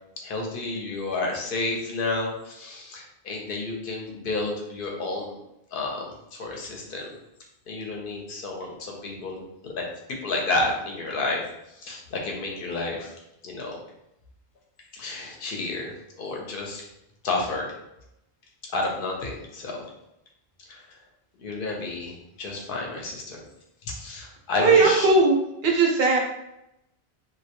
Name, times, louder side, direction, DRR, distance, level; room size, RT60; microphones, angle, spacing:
voice 1, 0.2-5.4 5.7-7.1 7.7-9.7 10.1-11.4 11.7-13.1 13.4-13.8 14.9-16.8 17.2-17.7 18.7-19.8 20.7-20.8 21.4-23.4 23.8-25.1, left 2 dB, 65° left, 0 dB, 0.7 m, -31 dB
voice 2, 24.6-25.4 25.6-26.2, right 3 dB, 75° right, 0 dB, 0.8 m, -18 dB
2.2 x 2.1 x 2.8 m, 0.84 s
omnidirectional pair, 1.1 m